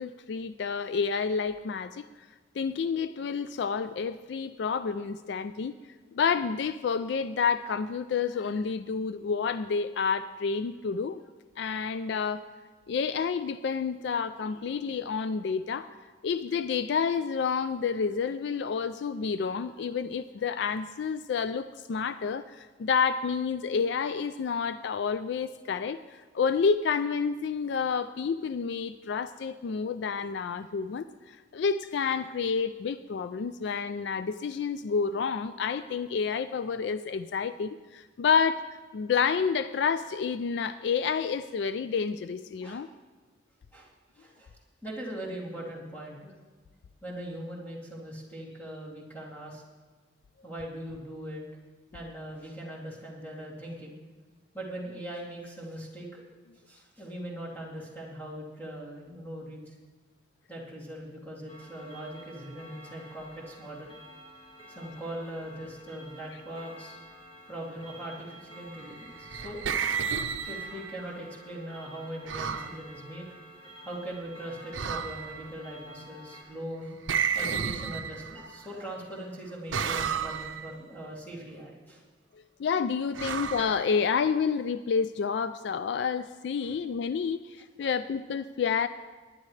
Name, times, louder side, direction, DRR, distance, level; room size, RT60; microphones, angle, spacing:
voice 1, 0.0-2.1 2.6-5.8 6.1-11.2 11.6-12.4 12.9-15.9 16.2-38.6 38.9-42.9 82.6-88.9, left 6 dB, 65° left, 13 dB, 0.3 m, -29 dB
voice 2, 44.1-44.5 44.8-46.3 47.0-49.6 50.4-51.5 51.9-53.9 54.5-56.2 56.7-59.7 60.5-63.9 64.7-67.0 67.5-69.6 70.5-73.3 73.8-76.9 77.3-82.0 86.6-86.7 87.8-87.9, right 1 dB, 10° left, -5 dB, 2.6 m, -40 dB
Clock, 61.5-76.4, equal, 25° left, 2.0 m, -50 dB
sound 1, 69.0-71.0 72.3-72.8 74.7-75.5 77.1-78.5 79.7-80.7 83.1-84.3, right 6 dB, 85° right, 0.6 m, -32 dB
19.0 x 10.5 x 3.2 m, 1.4 s
head